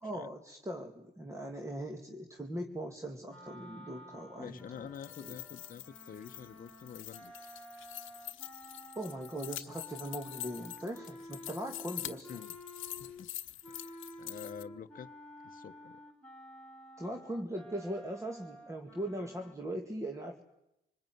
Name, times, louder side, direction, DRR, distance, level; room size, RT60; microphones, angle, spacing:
voice 1, 0.0-4.6 5.2-5.4 9.0-12.3 17.0-20.4, right 1 dB, 15° right, 2.3 m, -40 dB
sound 1, 3.2-13.3 13.6-19.5, equal, 5° left, 4.3 m, -51 dB
voice 2, 4.4-7.5 12.3-12.6 13.0-13.3 13.7-15.1 15.4-16.0, left 7 dB, 45° left, 1.1 m, -48 dB
sound 2, 4.8-14.6, left 14 dB, 80° left, 1.1 m, -45 dB
26.5 x 20.0 x 9.4 m
cardioid pair, 90°, 20 cm